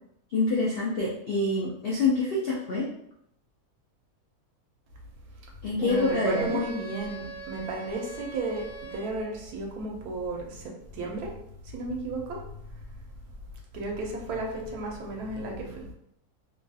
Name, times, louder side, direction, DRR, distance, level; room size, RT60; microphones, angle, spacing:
voice 1, 0.3-2.9 5.6-6.6, left 3 dB, 70° left, -5 dB, 0.5 m, -26 dB
voice 2, 5.8-11.3 11.7-12.4 13.7-15.9, right 2 dB, 75° right, 0 dB, 1.1 m, -33 dB
Wind instrument woodwind instrument, 5.9-9.4, right 3 dB, 25° left, 0.6 m, -41 dB
2.9 x 2.3 x 2.6 m, 0.74 s
omnidirectional pair, 1.6 m